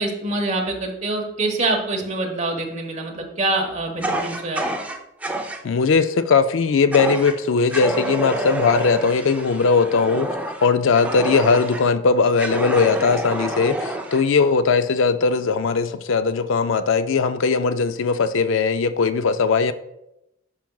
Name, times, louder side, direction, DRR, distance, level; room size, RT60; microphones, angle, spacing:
voice 1, 0.0-4.6, right 2 dB, 35° right, 1.2 m, -25 dB
Fire, 4.0-5.6 6.9-7.4 7.7-11.9 12.4-14.2, right 1 dB, 5° right, 0.5 m, -28 dB
voice 2, 5.6-10.3 10.6-19.7, left 4 dB, 75° left, 0.4 m, -19 dB
10.5 x 5.8 x 2.3 m
head